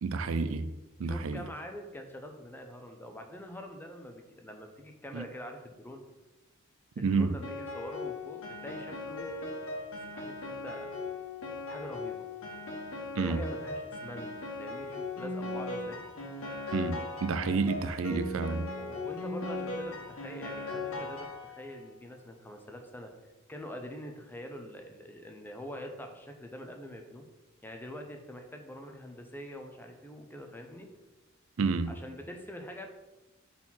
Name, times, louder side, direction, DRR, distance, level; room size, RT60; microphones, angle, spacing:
voice 1, 0.0-0.7 1.0-1.4 5.1-5.3 7.0-7.4 13.2-13.4 16.7-18.7 31.6-31.9, right 4 dB, 75° right, 0.4 m, -30 dB
voice 2, 1.0-6.0 7.0-9.3 10.1-10.9 11.7-12.3 13.2-14.3 14.6-16.0 18.8-23.1 23.5-27.3 27.6-30.9 31.9-32.9, equal, 10° left, 0.7 m, -44 dB
Piano, 7.4-21.8, left 2 dB, 85° left, 1.3 m, -38 dB
4.4 x 4.2 x 5.7 m
head